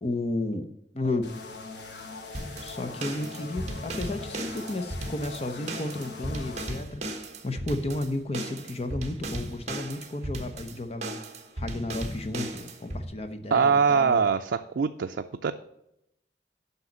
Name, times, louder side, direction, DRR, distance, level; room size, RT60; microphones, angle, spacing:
voice 1, 0.0-1.3 2.6-7.0 7.4-11.2 11.6-14.2, left 2 dB, 35° left, 7 dB, 0.8 m, -33 dB
sound 1, 1.2-6.7, left 3 dB, 75° left, 1.3 m, -42 dB
sound 2, 2.3-13.0, right 1 dB, 40° right, 1.3 m, -36 dB
voice 2, 13.5-15.5, right 6 dB, 80° right, 6 dB, 0.4 m, -23 dB
7.9 x 5.6 x 7.4 m, 0.82 s
head